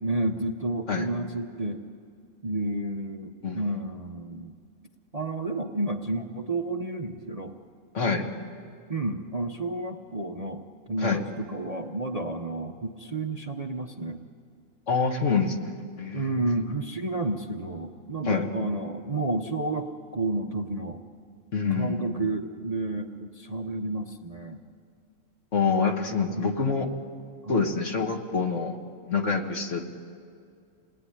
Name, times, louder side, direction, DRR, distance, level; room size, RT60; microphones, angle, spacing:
voice 1, 0.0-1.8 2.4-4.6 5.1-7.5 8.9-14.2 16.1-21.0 21.7-24.6 26.3-26.9 27.4-27.7, right 2 dB, 30° right, 4 dB, 0.8 m, -31 dB
voice 2, 7.9-8.3 11.0-11.2 14.9-16.4 18.3-18.5 21.5-22.1 25.5-26.9 27.5-28.8 29.0-29.9, left 5 dB, 50° left, 3 dB, 1.9 m, -26 dB
28.0 x 19.0 x 10.0 m, 2.3 s
omnidirectional pair, 1.6 m